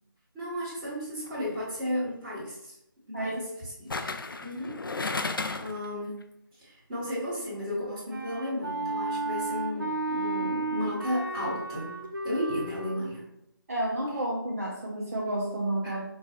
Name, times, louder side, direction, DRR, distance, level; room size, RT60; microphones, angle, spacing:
voice 1, 0.3-2.7 3.1-4.1 4.4-4.8 5.6-6.1 6.6-11.9 12.2-13.2 15.8-15.9, equal, 15° right, -10 dB, 1.3 m, -34 dB
sound 1, 1.3-1.6 3.9-5.9 6.2-6.3, left 3 dB, 70° left, 0.4 m, -33 dB
Wind instrument woodwind instrument, 8.1-13.0, right 2 dB, 70° right, 1.0 m, -33 dB
voice 2, 13.7-16.0, right 1 dB, 45° right, -4 dB, 0.7 m, -30 dB
5.1 x 2.3 x 2.9 m, 0.80 s
figure-of-eight pair, 155°, 12 cm